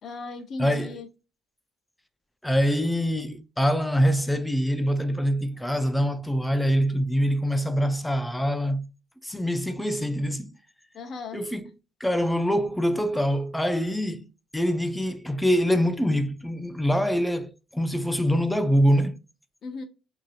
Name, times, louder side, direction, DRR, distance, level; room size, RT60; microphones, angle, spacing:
voice 1, 0.0-1.1 10.9-11.4 19.6-19.8, left 3 dB, 45° left, 0.6 m, -36 dB
voice 2, 0.6-0.9 2.4-8.9 9.2-10.5 11.3-11.7 12.0-19.2, equal, 5° left, 0.3 m, -24 dB
3.0 x 2.5 x 2.3 m
cardioid pair, 125°, 0 cm